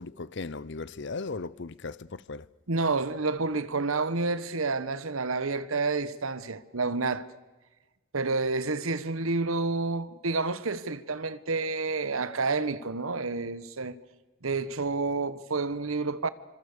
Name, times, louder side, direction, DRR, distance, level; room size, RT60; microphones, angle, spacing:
voice 1, 0.0-2.5, left 3 dB, 60° left, 0.7 m, -37 dB
voice 2, 2.7-7.3 8.1-14.0 14.4-16.3, right 3 dB, 85° right, 1.2 m, -29 dB
27.5 x 26.0 x 6.7 m
head